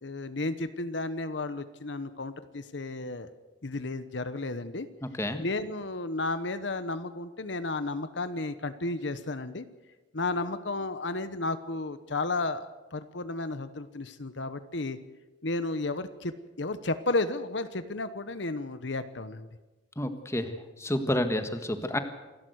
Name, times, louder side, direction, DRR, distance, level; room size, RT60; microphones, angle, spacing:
voice 1, 0.0-3.3 3.6-4.9 5.4-9.6 10.1-15.0 15.4-19.5, left 2 dB, 70° left, 12 dB, 1.1 m, -33 dB
voice 2, 20.0-22.0, left 1 dB, 15° left, 8 dB, 1.5 m, -30 dB
27.5 x 12.5 x 8.1 m, 1.1 s
head